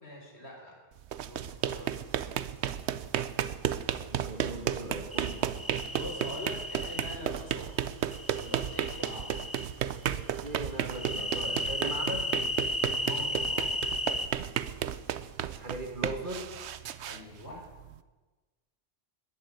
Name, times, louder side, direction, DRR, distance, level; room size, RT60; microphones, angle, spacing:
voice 1, 0.0-0.8 1.3-2.0 5.9-7.7 8.3-9.4 13.0-13.7 17.0-17.7, left 1 dB, 75° left, -1 dB, 4.3 m, -43 dB
sound 1, 1.0-18.0, right 10 dB, 85° right, 1.0 m, -33 dB
voice 2, 4.1-5.5 10.0-12.3 15.5-16.5, right 1 dB, 50° right, 3 dB, 2.2 m, -39 dB
sound 2, 5.1-7.2 8.1-9.7 10.9-14.3, left 1 dB, 15° left, 1.0 m, -34 dB
20.5 x 7.3 x 8.4 m, 1.2 s
omnidirectional pair, 1.1 m